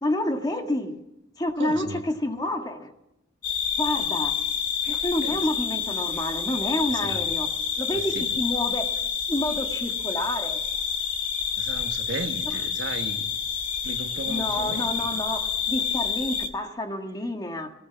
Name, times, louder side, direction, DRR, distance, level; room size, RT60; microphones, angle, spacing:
voice 1, 0.0-1.0 1.4-2.9 3.8-4.3 4.9-7.5 7.8-8.9 9.3-10.6 14.3-17.7, left 1 dB, 20° left, 5 dB, 1.8 m, -29 dB
voice 2, 1.6-2.0 5.2-5.5 6.9-7.3 7.9-8.4 11.6-13.3 13.8-15.2, right 2 dB, 65° right, 7 dB, 1.5 m, -36 dB
sound 1, 3.4-16.5, left 7 dB, 45° left, 2.2 m, -28 dB
20.5 x 18.0 x 7.2 m, 0.88 s
head